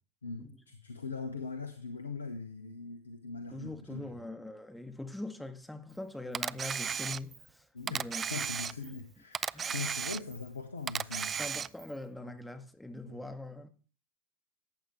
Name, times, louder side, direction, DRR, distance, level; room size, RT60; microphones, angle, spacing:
voice 1, 0.2-4.2 7.7-11.4 13.1-13.2, left 4 dB, 85° left, 1.2 m, -41 dB
voice 2, 3.5-8.2 8.8-8.9 9.5-9.7 11.4-13.7, left 2 dB, 5° left, 1.6 m, -42 dB
Camera, 6.3-7.5 7.9-9.0 9.3-10.5 10.9-11.9, right 7 dB, 30° right, 0.4 m, -35 dB
15.0 x 9.1 x 3.1 m
figure-of-eight pair, 80°, 0 cm